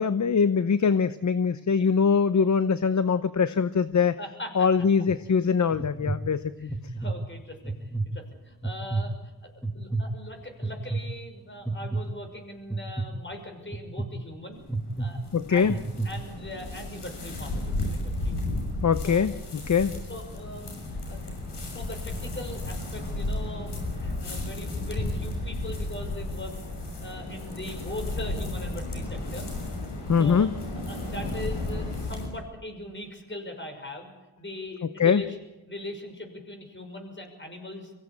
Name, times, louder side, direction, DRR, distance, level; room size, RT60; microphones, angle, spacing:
voice 1, 0.0-4.1 4.6-6.7 15.3-15.7 18.8-19.9 30.1-30.5 35.0-35.2, left 6 dB, 45° left, 13 dB, 0.8 m, -23 dB
voice 2, 4.2-4.7 6.6-14.6 15.0-15.2 15.5-18.4 19.0-19.3 20.0-21.2 21.7-26.5 27.0-29.5 30.2-34.1 34.4-35.4 35.7-37.9, left 1 dB, 30° left, 5 dB, 6.2 m, -40 dB
sound 1, 4.8-5.2 5.7-6.2 6.7-7.1 7.6-8.1 8.6-9.1 9.6-10.1 10.6-11.0 11.7-12.0 12.7-13.1 13.7-14.1 14.7-15.1 15.6-16.1, right 3 dB, ahead, 1.7 m, -29 dB
sound 2, 14.5-32.3, left 2 dB, 85° left, 6.3 m, -33 dB
24.0 x 16.5 x 8.7 m, 1.1 s
cardioid pair, 70°, 40 cm